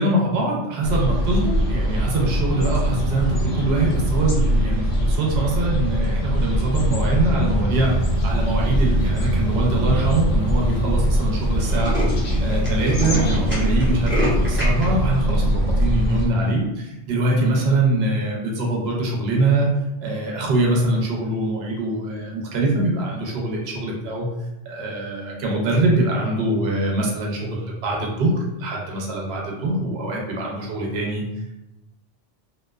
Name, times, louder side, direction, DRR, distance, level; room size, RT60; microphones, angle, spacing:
voice 1, 0.0-7.9 8.2-12.0 12.4-19.7 20.0-24.3 24.7-31.2, right 2 dB, 60° right, -2 dB, 0.8 m, -23 dB
sound 1, 0.8-16.3, equal, 85° left, 1.1 m, -22 dB
Tools, 8.8-9.2 9.8-9.9 10.1-10.2 10.5-10.7 11.0-11.1 11.4-14.8, equal, 10° right, 0.6 m, -28 dB
2.6 x 2.1 x 2.3 m, 0.95 s
omnidirectional pair, 1.3 m